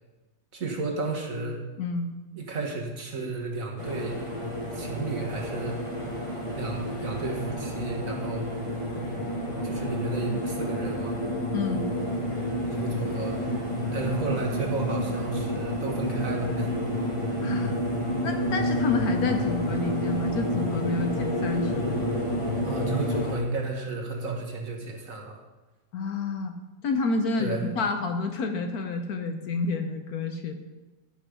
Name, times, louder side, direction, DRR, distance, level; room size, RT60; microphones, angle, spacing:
voice 1, 0.5-1.6 2.3-4.2 4.7-5.8 6.5-8.5 9.6-11.2 12.7-13.4 13.9-17.1 22.6-25.4 27.4-27.7, right 3 dB, 50° right, 1 dB, 1.8 m, -33 dB
voice 2, 1.8-2.1 11.5-11.9 17.4-17.7 18.2-22.0 25.9-26.5 26.8-30.5, left 3 dB, 60° left, 6 dB, 1.2 m, -29 dB
sound 1, 3.8-23.4, equal, 15° left, 1.8 m, -29 dB
14.0 x 6.2 x 5.1 m, 1.2 s
omnidirectional pair, 1.9 m